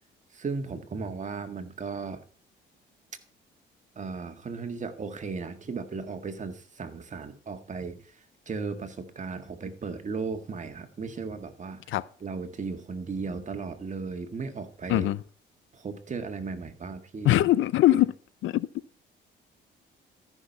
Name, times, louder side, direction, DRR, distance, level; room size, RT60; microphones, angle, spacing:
voice 1, 0.3-2.2 4.0-11.9 12.2-15.1 15.7-17.3 17.9-18.0, right 4 dB, 40° right, 1.7 m, -36 dB
voice 2, 17.2-18.1 18.4-18.7, left 14 dB, 80° left, 0.6 m, -22 dB
13.5 x 6.1 x 5.5 m
cardioid pair, 90°, 20 cm